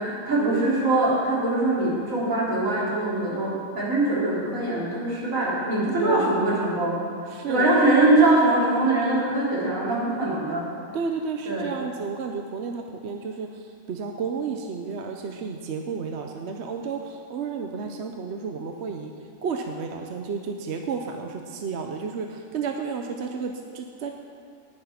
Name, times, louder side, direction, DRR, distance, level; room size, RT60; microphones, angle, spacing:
voice 1, 0.0-7.0 7.5-10.7 11.5-11.7, right 2 dB, 80° right, -7 dB, 3.9 m, -22 dB
voice 2, 6.0-6.3 7.3-7.7 10.9-19.1 19.4-24.1, right 5 dB, 60° right, 3 dB, 1.0 m, -32 dB
18.5 x 6.3 x 5.8 m, 2.3 s
omnidirectional pair, 1.4 m